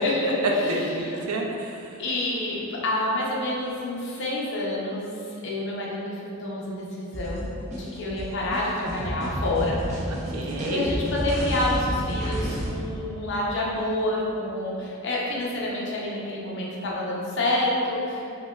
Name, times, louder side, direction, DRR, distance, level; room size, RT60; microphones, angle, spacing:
voice 1, 0.0-1.3 2.0-9.8 10.7-18.5, left 1 dB, 60° left, -4 dB, 0.6 m, -28 dB
voice 2, 0.7-2.0 10.1-10.9, right 1 dB, 90° right, 0 dB, 0.5 m, -30 dB
sound 1, 7.1-12.7, equal, 35° right, 0.7 m, -30 dB
4.9 x 2.2 x 2.3 m, 2.7 s
head